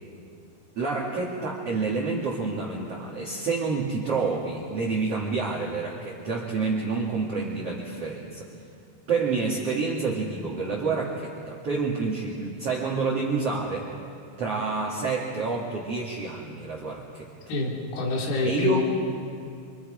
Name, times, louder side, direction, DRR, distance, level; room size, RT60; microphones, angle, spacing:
voice 1, 0.8-8.4 9.1-13.9 14.4-17.3 18.4-18.8, right 4 dB, 45° right, -4 dB, 2.4 m, -28 dB
voice 2, 17.5-18.8, left 3 dB, 65° left, -1 dB, 4.5 m, -26 dB
26.0 x 26.0 x 5.0 m, 2.4 s
omnidirectional pair, 4.8 m